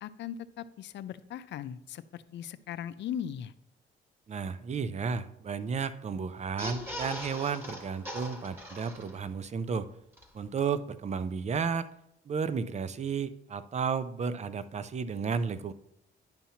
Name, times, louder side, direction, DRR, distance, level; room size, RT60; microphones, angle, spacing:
voice 1, 0.0-3.5, left 9 dB, 65° left, 14 dB, 0.5 m, -39 dB
voice 2, 4.3-9.9 10.3-11.9 12.3-15.7, right 6 dB, 35° right, 13 dB, 0.5 m, -33 dB
sound 1, 6.4-9.4 9.8-9.9 10.1-10.2, equal, 10° right, 1.4 m, -40 dB
10.5 x 5.6 x 2.8 m, 0.81 s
cardioid pair, 90°, 20 cm